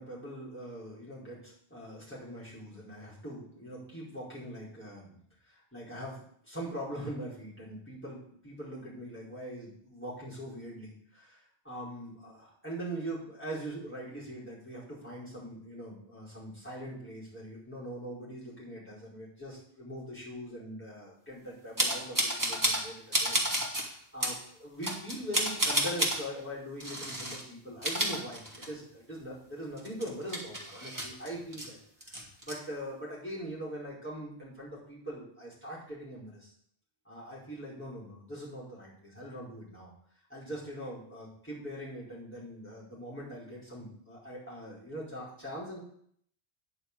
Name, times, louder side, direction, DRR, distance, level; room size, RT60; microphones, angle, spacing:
voice 1, 0.0-23.4 23.8-31.8 32.1-36.5 37.0-39.9 40.3-45.8, equal, 10° left, -8 dB, 4.8 m, -42 dB
sound 1, 21.8-22.9 23.1-23.9 24.2-24.4 24.8-26.2 26.8-27.4 27.7-28.9 29.2-29.3 29.8-31.7 32.0-32.5, right 1 dB, 15° right, 2.0 m, -30 dB
9.8 x 5.0 x 8.1 m, 0.64 s
omnidirectional pair, 1.1 m